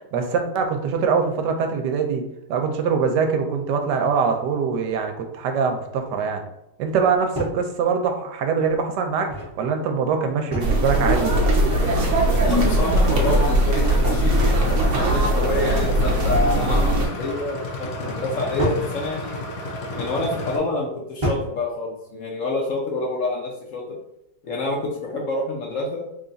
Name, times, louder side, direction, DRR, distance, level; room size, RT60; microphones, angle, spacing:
voice 1, 0.1-2.2 2.5-6.4 6.8-9.3 9.6-11.3, right 5 dB, 90° right, 4 dB, 1.2 m, -23 dB
sound 1, 7.3-7.6 9.0-9.6 10.5-11.0 12.6-13.2 14.4-14.9 16.3-16.9 18.6-18.9 19.9-20.2 21.2-21.6, equal, 25° right, 0.9 m, -30 dB
sound 2, 10.6-17.1, right 1 dB, 60° right, 0.8 m, -19 dB
sound 3, 11.3-20.6, left 2 dB, 85° left, 1.3 m, -32 dB
voice 2, 12.4-19.4 20.0-24.0 24.4-26.1, left 2 dB, 60° left, -1 dB, 0.9 m, -28 dB
3.4 x 2.4 x 3.9 m, 0.85 s
omnidirectional pair, 1.8 m